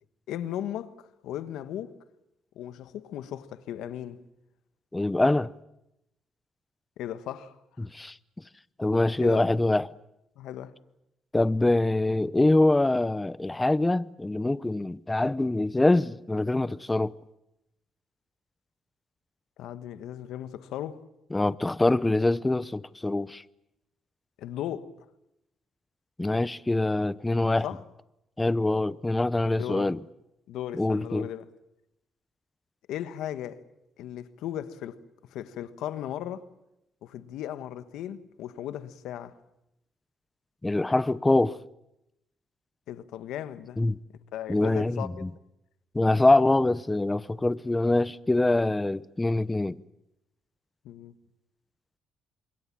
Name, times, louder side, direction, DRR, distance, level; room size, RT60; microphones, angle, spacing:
voice 1, 0.3-0.9 1.2-1.9 2.5-4.2 7.0-7.9 9.2-9.4 10.4-10.7 19.6-21.0 24.4-24.9 27.6-27.8 29.6-29.9 30.5-31.5 32.9-33.6 34.0-34.9 35.3-36.5 37.0-39.3 42.9-43.8 44.3-45.2 50.8-51.1, left 11 dB, 85° left, 1.3 m, -36 dB
voice 2, 4.9-5.5 7.8-8.1 8.8-9.9 11.3-17.1 21.3-23.4 26.2-27.7 28.4-30.0 30.7-31.3 40.6-41.6 43.8-44.0 44.5-45.3 45.9-49.8, left 2 dB, 15° left, 0.8 m, -24 dB
26.5 x 23.0 x 7.5 m
supercardioid pair, 70°, 0 cm